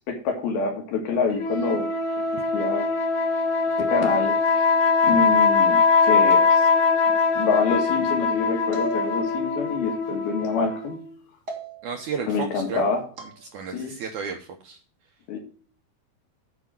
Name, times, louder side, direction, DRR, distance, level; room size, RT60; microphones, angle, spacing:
voice 1, 0.1-1.9 2.5-2.9 3.8-4.6 5.0-6.7 7.4-11.0 12.3-13.0 13.7-13.9 15.3-15.4, left 4 dB, 75° left, 3 dB, 3.5 m, -26 dB
sound 1, 1.4-11.1, left 4 dB, 55° left, 2.6 m, -22 dB
sound 2, 6.3-7.1 8.7-9.7 11.5-12.1 13.2-13.4, right 2 dB, 40° right, 1.6 m, -36 dB
voice 2, 11.8-12.9 13.5-14.8, right 6 dB, 75° right, 4 dB, 1.8 m, -32 dB
8.4 x 5.1 x 7.4 m, 0.42 s
omnidirectional pair, 4.4 m